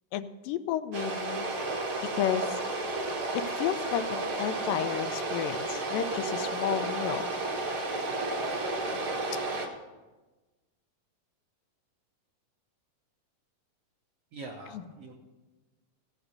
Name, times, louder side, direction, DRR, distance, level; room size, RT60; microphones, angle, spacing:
voice 1, 0.1-1.4 2.1-2.4 3.3-7.3 14.7-14.8, left 10 dB, 85° left, 11 dB, 2.3 m, -32 dB
sound 1, 0.9-9.7, right 2 dB, 50° right, 1.9 m, -32 dB
voice 2, 14.3-15.1, right 2 dB, 65° right, 0 dB, 1.6 m, -43 dB
16.5 x 5.9 x 6.6 m, 1.2 s
omnidirectional pair, 3.9 m